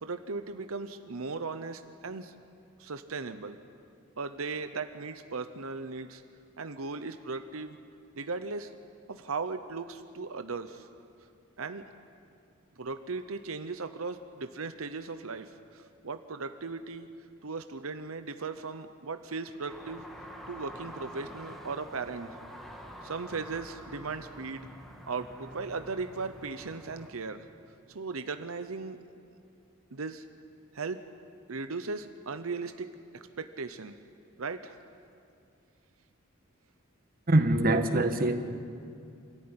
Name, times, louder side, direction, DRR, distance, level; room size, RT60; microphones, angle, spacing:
voice 1, 0.0-2.3 2.8-3.6 4.2-6.2 6.6-7.8 8.1-8.7 9.1-10.9 11.6-11.8 12.8-17.1 17.4-20.0 20.5-22.4 23.0-24.7 25.1-27.5 27.9-29.0 29.9-30.3 30.7-31.0 31.5-32.9 33.1-34.0 34.4-34.8, right 4 dB, 85° right, 9 dB, 0.9 m, -37 dB
sound 1, 19.7-27.1, equal, ahead, 1.9 m, -47 dB
voice 2, 37.3-38.4, right 1 dB, 45° right, 7 dB, 1.4 m, -24 dB
26.5 x 14.0 x 9.7 m, 2.5 s
head